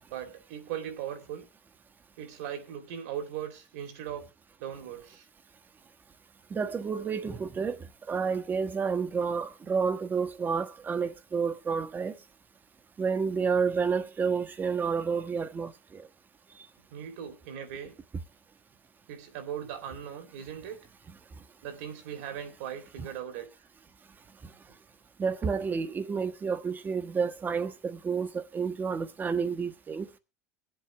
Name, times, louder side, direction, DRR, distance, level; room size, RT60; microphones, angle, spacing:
voice 1, 0.1-1.5 2.2-4.3 4.6-5.3 16.9-18.0 19.1-20.8 21.6-23.5, right 9 dB, 75° right, 3.2 m, -39 dB
voice 2, 6.5-7.8 8.1-12.1 13.0-16.0 25.2-30.1, right 5 dB, 25° right, 1.3 m, -30 dB
22.0 x 8.0 x 3.3 m
supercardioid pair, 115°, 8 cm